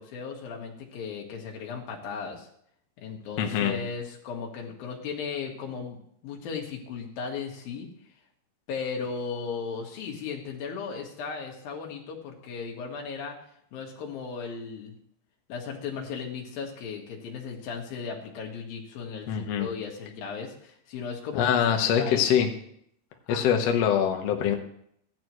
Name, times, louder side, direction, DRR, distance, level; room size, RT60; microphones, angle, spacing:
voice 1, 0.0-2.5 3.0-6.0 6.2-7.9 8.7-13.4 13.7-14.9 15.5-22.4 23.3-23.5, left 5 dB, 65° left, 0 dB, 3.3 m, -36 dB
voice 2, 3.4-3.7 19.3-19.7 21.3-22.5 23.3-24.5, left 8 dB, 90° left, 3 dB, 1.4 m, -24 dB
16.5 x 11.0 x 3.1 m, 0.70 s
omnidirectional pair, 4.8 m